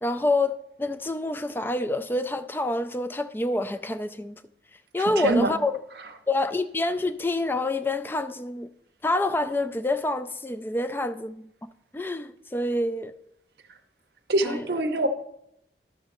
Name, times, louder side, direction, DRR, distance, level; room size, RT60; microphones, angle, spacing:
voice 1, 0.0-4.4 4.9-5.7 6.3-8.7 9.0-11.5 11.9-13.1 14.4-14.7, left 2 dB, 10° left, 0.3 m, -27 dB
voice 2, 5.2-5.5 14.3-15.1, right 2 dB, 65° right, 0.6 m, -24 dB
12.0 x 6.7 x 2.9 m
head